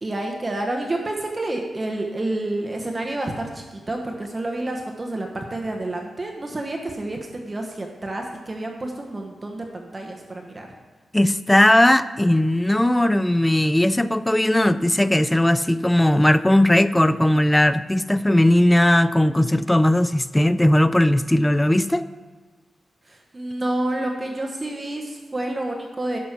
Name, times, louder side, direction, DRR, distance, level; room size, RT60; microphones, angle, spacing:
voice 1, 0.0-10.7 23.1-26.2, right 1 dB, 30° right, 2 dB, 1.1 m, -29 dB
voice 2, 11.1-22.1, left 1 dB, 10° left, 14 dB, 0.3 m, -18 dB
11.0 x 6.4 x 5.9 m, 1.4 s
wide cardioid pair, 115°, 0 cm